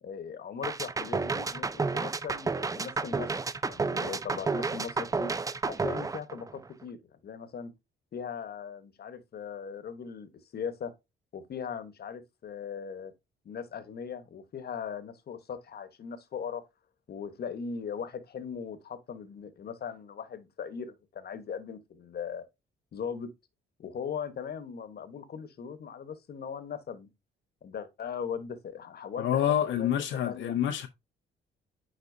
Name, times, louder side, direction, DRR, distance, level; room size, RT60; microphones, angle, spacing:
voice 1, 0.0-3.4 3.7-5.3 5.7-7.7 8.1-10.9 11.3-13.1 13.4-16.6 17.1-22.4 22.9-23.3 23.8-27.1 27.6-29.9 30.3-30.5, left 7 dB, 55° left, 1.1 m, -39 dB
sound 1, 0.6-6.8, right 4 dB, 15° right, 0.4 m, -31 dB
voice 2, 29.2-30.9, left 10 dB, 75° left, 0.7 m, -27 dB
9.4 x 4.1 x 2.7 m
cardioid pair, 90°, 20 cm